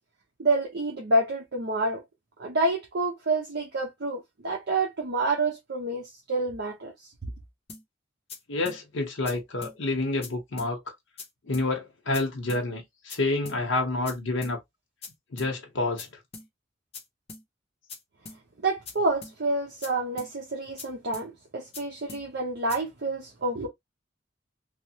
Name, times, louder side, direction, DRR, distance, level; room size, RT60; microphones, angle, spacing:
voice 1, 0.4-2.0 2.4-6.9 7.2-7.3 18.6-23.7, right 2 dB, 60° right, 0.8 m, -28 dB
sound 1, 7.7-7.8 8.3-8.4 8.7-8.8 9.3-9.4 9.6-9.8 10.2-10.3 10.6-10.7 11.2-11.3 11.5-11.7 12.1-12.2 12.5-12.6 13.1-13.2 13.5-13.6 14.1-14.2 14.4-14.6 15.0-15.1 15.4-15.5 16.0-16.1 16.3-16.5 16.9-17.0 17.3-17.4 17.9-18.0 18.3-18.4 18.9-19.0 19.2-19.4 19.8-19.9 20.2-20.3 20.8-20.9 21.1-21.3 21.7-21.8 22.1-22.2 22.7-22.8, left 4 dB, 30° left, 0.7 m, -42 dB
voice 2, 8.5-10.9 11.5-14.6 15.3-16.2, left 2 dB, 80° left, 0.9 m, -28 dB
3.2 x 2.1 x 2.8 m
head